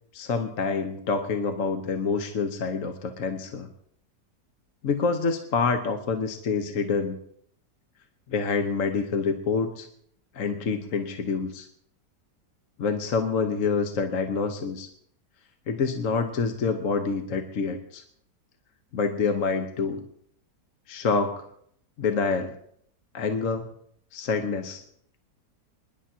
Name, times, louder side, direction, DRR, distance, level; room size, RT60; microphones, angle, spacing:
voice 1, 0.1-3.7 4.8-7.2 8.3-9.9 10.3-11.7 12.8-14.9 15.7-18.0 18.9-20.0 20.9-21.4 22.0-22.6 23.1-23.7 24.1-24.8, left 5 dB, 55° left, 6 dB, 1.2 m, -27 dB
25.5 x 11.0 x 2.8 m, 0.64 s
omnidirectional pair, 1.8 m